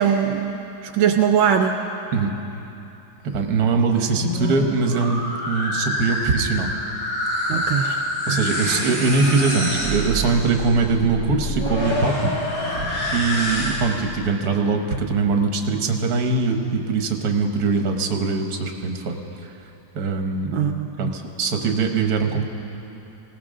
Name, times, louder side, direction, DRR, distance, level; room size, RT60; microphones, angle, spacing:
voice 1, 0.0-1.7 7.5-7.9 8.3-8.4 20.5-21.1, right 8 dB, 80° right, 5 dB, 1.4 m, -21 dB
voice 2, 3.3-6.7 7.5-12.3 12.6-12.8 13.1-19.5 19.9-20.6 21.0-22.4, right 4 dB, 55° right, 4 dB, 1.5 m, -22 dB
sound 1, 4.0-14.0, left 1 dB, 50° left, 3.5 m, -26 dB
20.0 x 17.5 x 3.7 m, 3.0 s
omnidirectional pair, 2.2 m